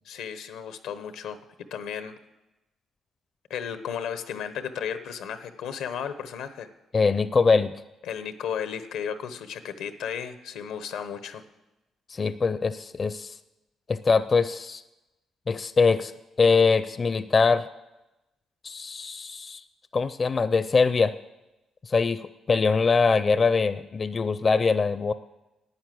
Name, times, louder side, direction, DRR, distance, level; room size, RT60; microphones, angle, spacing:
voice 1, 0.1-1.4 1.7-2.1 3.5-6.7 8.0-11.4, left 8 dB, 90° left, 11 dB, 0.9 m, -34 dB
voice 2, 6.9-7.7 12.1-13.3 13.9-14.8 15.5-16.1 16.4-17.7 18.6-19.6 19.9-21.1 21.9-25.1, left 4 dB, 35° left, 13 dB, 0.5 m, -23 dB
11.5 x 9.0 x 7.6 m, 0.99 s
cardioid pair, 90°, 0 cm